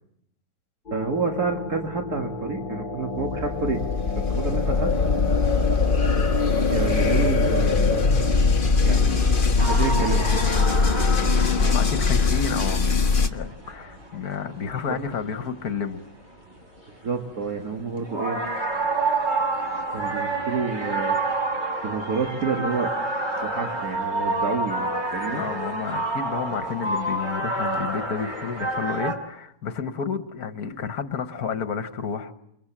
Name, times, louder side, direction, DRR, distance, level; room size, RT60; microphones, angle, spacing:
sound 1, 0.9-13.3, left 4 dB, 35° left, 1.4 m, -22 dB
voice 1, 0.9-3.8 4.3-4.9 6.7-8.3 8.8-9.3 9.6-10.3 14.8-15.0 17.0-18.4 19.9-21.2 21.8-22.9 23.4-25.4, right 4 dB, 60° right, 2 dB, 2.3 m, -29 dB
sound 2, 9.6-16.3 16.8-17.2 17.5-29.1, right 2 dB, 25° right, 4.3 m, -29 dB
voice 2, 11.4-16.0 25.3-32.3, left 6 dB, 60° left, 10 dB, 1.8 m, -31 dB
29.0 x 21.5 x 7.4 m, 0.77 s
omnidirectional pair, 1.8 m